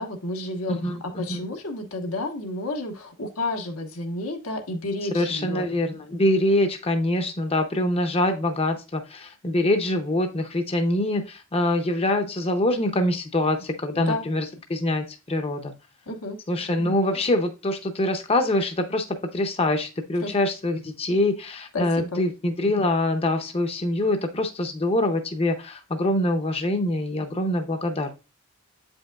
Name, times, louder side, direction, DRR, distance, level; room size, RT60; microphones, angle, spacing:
voice 1, 0.0-5.7 13.9-14.2 16.1-16.4 20.2-20.3 21.7-22.2, left 2 dB, 85° left, 3 dB, 1.2 m, -31 dB
voice 2, 5.1-14.4 14.7-15.7 16.5-19.0 19.3-28.1, left 1 dB, 30° left, 5 dB, 0.6 m, -24 dB
8.0 x 5.2 x 2.3 m, 0.29 s
head